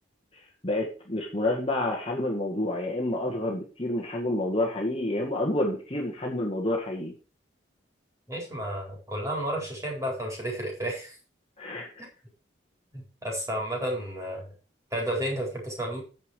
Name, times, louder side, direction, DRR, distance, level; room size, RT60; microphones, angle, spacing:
voice 1, 0.3-7.1 11.6-12.1, left 1 dB, 30° left, -1 dB, 1.9 m, -29 dB
voice 2, 8.3-11.2 12.0-12.1 12.9-14.5 14.9-16.0, right 1 dB, 15° right, -2 dB, 4.3 m, -32 dB
9.9 x 7.3 x 4.8 m, 0.35 s
head